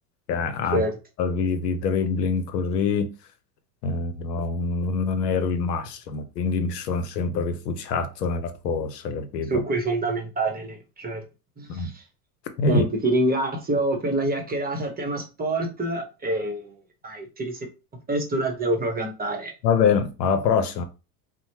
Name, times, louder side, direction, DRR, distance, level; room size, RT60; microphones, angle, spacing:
voice 1, 0.3-0.8 1.2-3.1 3.8-9.6 11.7-11.9 12.6-12.8 19.6-20.8, left 5 dB, 85° left, 0.7 m, -25 dB
voice 2, 9.5-11.2 11.6-12.0 12.7-17.7 18.1-19.5, right 2 dB, 20° right, 0.9 m, -26 dB
3.1 x 2.1 x 2.8 m
hypercardioid pair, 90°, 47 cm